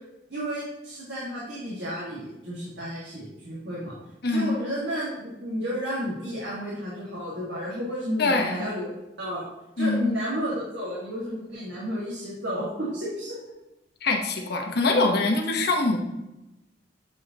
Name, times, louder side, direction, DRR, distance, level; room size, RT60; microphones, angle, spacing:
voice 1, 0.3-3.9 4.2-8.9 9.2-9.5 9.8-13.4, equal, 80° right, -7 dB, 1.9 m, -32 dB
voice 2, 4.2-4.6 8.2-8.6 9.8-10.1 14.0-16.0, left 3 dB, 60° left, 3 dB, 1.0 m, -24 dB
8.0 x 4.9 x 2.9 m, 0.96 s
head